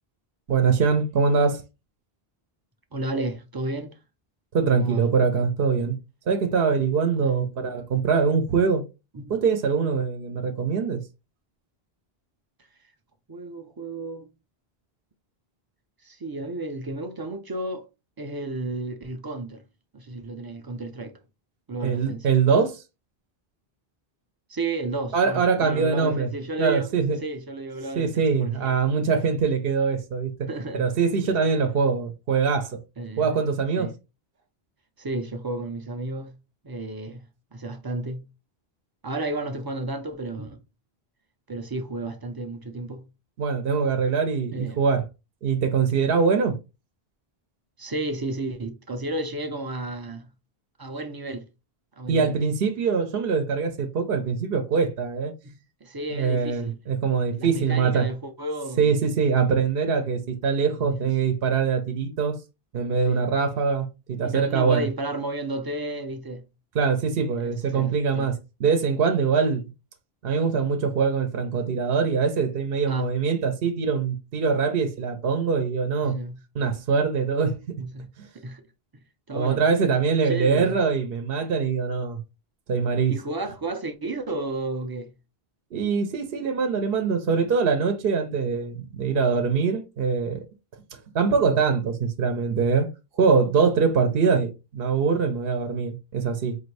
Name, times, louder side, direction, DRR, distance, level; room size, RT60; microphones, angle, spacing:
voice 1, 0.5-1.6 4.5-5.9 6.3-8.8 9.3-11.0 21.8-22.8 25.1-26.3 26.6-27.2 28.0-30.3 30.7-32.8 33.2-33.9 43.4-45.0 45.4-46.6 52.1-55.3 56.1-58.1 58.8-62.3 62.7-64.9 66.7-69.7 70.2-76.2 76.5-77.6 78.2-78.3 79.3-82.2 82.7-83.1 85.7-90.4 91.1-92.9 93.1-96.6, right 5 dB, 70° right, 0.9 m, -23 dB
voice 2, 2.9-4.0 4.7-5.0 7.2-7.5 9.1-9.3 13.3-14.3 16.0-17.9 18.2-19.6 19.9-21.2 21.7-22.4 24.5-26.9 27.2-28.8 30.5-30.9 31.4-31.5 33.0-33.3 33.8-33.9 35.0-36.3 36.6-37.2 37.5-38.3 39.0-40.6 41.5-43.1 44.5-44.8 47.8-50.3 50.8-51.4 52.0-52.4 55.4-56.8 57.4-59.0 60.8-61.1 63.1-63.3 64.2-66.4 67.4-68.3 72.9-73.1 76.0-76.4 77.8-78.1 78.3-78.6 79.3-79.6 80.2-80.8 83.1-85.1 89.1-89.3 95.1-95.2, right 2 dB, 30° right, 0.4 m, -32 dB
4.7 x 2.6 x 3.2 m
omnidirectional pair, 1.0 m